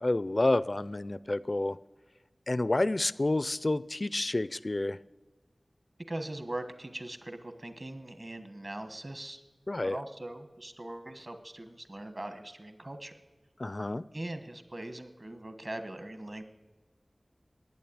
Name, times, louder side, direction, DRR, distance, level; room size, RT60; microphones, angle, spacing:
voice 1, 0.0-1.8 2.5-5.0 9.7-10.0 13.6-14.1, left 2 dB, 45° left, 18 dB, 0.4 m, -29 dB
voice 2, 6.1-9.4 9.8-13.1 14.1-16.4, right 1 dB, 45° right, 9 dB, 1.3 m, -41 dB
10.5 x 9.2 x 8.7 m, 1.2 s
wide cardioid pair, 55°, 0 cm